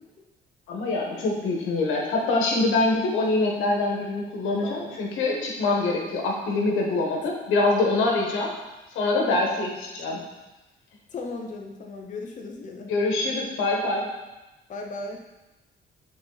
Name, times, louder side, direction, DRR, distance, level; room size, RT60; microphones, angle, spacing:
voice 1, 0.7-8.5 8.9-10.2 12.9-14.0, left 2 dB, 90° left, -1 dB, 1.3 m, -24 dB
voice 2, 4.6-5.0 11.1-12.9 14.7-15.2, left 3 dB, 40° left, 1 dB, 0.8 m, -36 dB
6.5 x 4.1 x 4.0 m, 1.1 s
cardioid pair, 90°, 20 cm